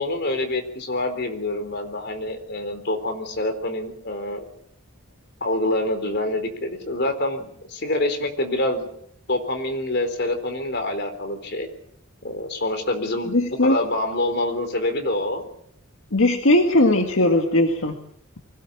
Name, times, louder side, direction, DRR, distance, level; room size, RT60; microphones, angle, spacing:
voice 1, 0.0-4.5 5.4-8.9 9.3-11.7 12.2-13.3 13.6-15.5, left 1 dB, 55° left, 6 dB, 4.0 m, -26 dB
voice 2, 13.3-13.8 16.1-18.0, left 1 dB, 70° left, 4 dB, 1.9 m, -18 dB
24.0 x 17.0 x 8.6 m, 0.71 s
head